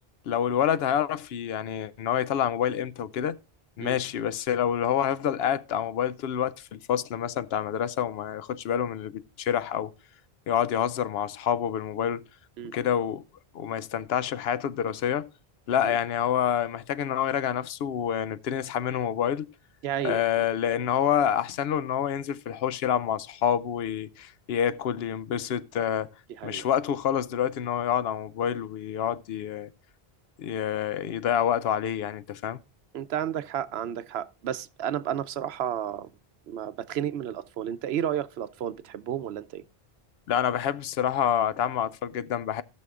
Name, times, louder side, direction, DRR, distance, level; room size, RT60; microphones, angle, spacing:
voice 1, 0.3-3.4 3.8-9.9 10.5-12.2 12.7-13.2 13.5-15.3 15.7-19.5 20.0-26.1 26.4-29.7 30.4-32.6 40.3-42.6, left 9 dB, 75° left, 0.8 m, -27 dB
voice 2, 19.8-20.5 26.4-26.7 32.9-36.1 36.5-39.6, right 10 dB, 80° right, 0.9 m, -32 dB
17.0 x 6.2 x 2.4 m
omnidirectional pair, 1.0 m